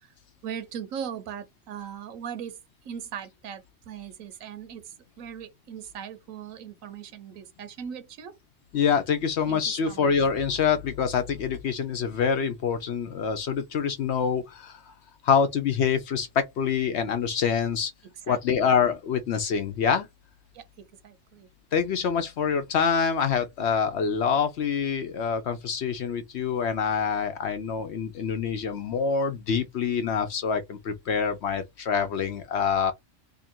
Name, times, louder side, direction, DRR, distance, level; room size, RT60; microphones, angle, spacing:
voice 1, 0.4-2.6 2.8-8.4 9.5-9.6 9.9-10.1 18.3-18.7 20.5-20.6 21.0-21.5, right 8 dB, 90° right, 1.1 m, -39 dB
voice 2, 8.7-14.9 15.2-17.9 18.3-20.1 21.7-32.9, left 6 dB, 65° left, 0.8 m, -26 dB
2.8 x 2.5 x 4.2 m
omnidirectional pair, 1.4 m